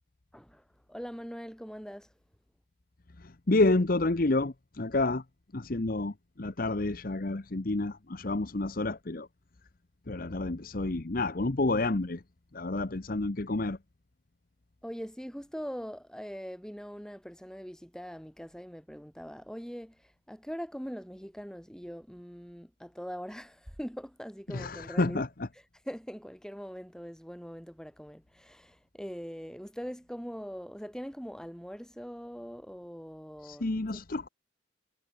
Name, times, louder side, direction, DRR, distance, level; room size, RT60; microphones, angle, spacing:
voice 1, 0.3-0.6 0.9-2.1 14.8-25.2 25.9-33.6 33.9-34.0, equal, 5° left, 6.9 m, -42 dB
voice 2, 3.2-5.2 5.5-9.3 10.1-12.2 12.5-13.8 24.5-25.5 33.4-34.3, left 2 dB, 45° left, 0.9 m, -29 dB
head